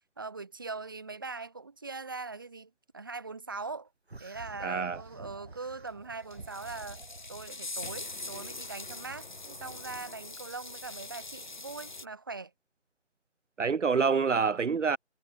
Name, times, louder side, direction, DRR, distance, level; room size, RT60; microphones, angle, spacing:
voice 1, 0.2-3.9 4.2-7.0 7.3-12.5, right 4 dB, 20° right, 3.1 m, -41 dB
sound 1, 4.1-7.5, right 2 dB, 55° right, 5.1 m, -49 dB
voice 2, 4.6-5.0 13.6-15.0, right 5 dB, 75° right, 0.7 m, -26 dB
sound 2, 5.9-6.0 6.3-12.1, left 2 dB, 40° left, 2.5 m, -43 dB
figure-of-eight pair, 175°, 36 cm